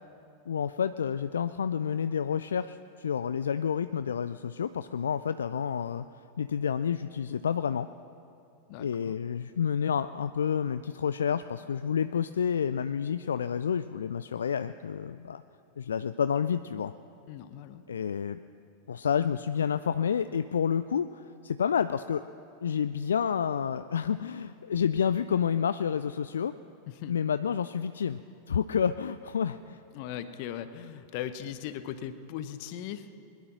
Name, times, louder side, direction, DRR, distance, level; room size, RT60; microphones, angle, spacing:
voice 1, 0.5-6.0 6.4-7.9 8.8-15.4 15.8-16.9 17.9-18.4 18.9-22.2 22.6-26.5 27.1-28.2 28.5-29.8, left 7 dB, 65° left, 12 dB, 0.3 m, -29 dB
voice 2, 8.7-9.1 17.3-17.8 26.9-27.1 29.9-33.1, left 10 dB, 45° left, 12 dB, 0.8 m, -39 dB
21.5 x 10.5 x 6.1 m, 2.6 s
figure-of-eight pair, 90°, 0 cm